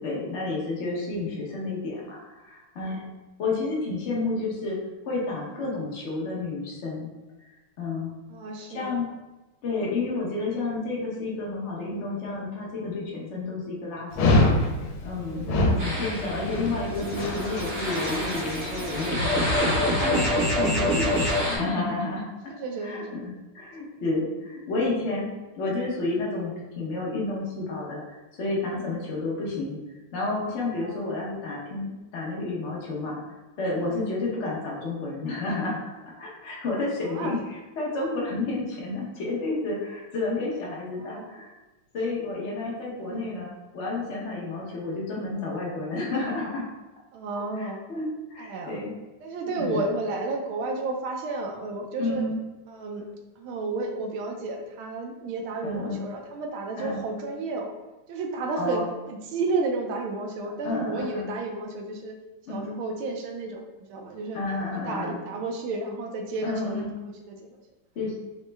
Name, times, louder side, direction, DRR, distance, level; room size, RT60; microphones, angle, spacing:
voice 1, 0.0-3.1 3.4-4.8 5.1-7.1 7.8-8.2 8.7-9.1 9.6-14.5 15.0-15.5 15.8-21.1 21.5-22.2 22.8-25.3 25.6-29.8 30.1-33.2 33.6-35.9 36.2-41.5 41.9-46.7 47.5-48.9 49.5-49.8 52.0-52.4 55.6-56.0 56.8-57.1 58.6-58.8 60.6-61.3 62.5-62.7 64.3-65.2 66.4-66.9 68.0-68.2, left 3 dB, 65° left, -4 dB, 0.6 m, -30 dB
voice 2, 8.3-8.9 15.3-15.9 20.8-21.3 22.5-23.2 28.7-29.0 30.8-31.2 33.8-34.1 37.0-37.4 41.0-41.3 43.0-43.3 47.1-47.8 48.4-48.8 49.2-52.2 52.7-53.1 53.4-57.7 58.1-58.8 59.1-62.1 62.5-63.6 63.9-64.4 64.7-67.6, right 3 dB, 80° right, 2 dB, 1.4 m, -32 dB
Dog, 14.1-19.6, left 1 dB, 85° left, 1.5 m, -26 dB
sound 1, 15.8-21.6, equal, 45° right, 1.1 m, -32 dB
sound 2, 16.0-21.5, left 1 dB, 10° right, 0.6 m, -27 dB
4.8 x 2.1 x 3.2 m, 1.1 s
omnidirectional pair, 2.3 m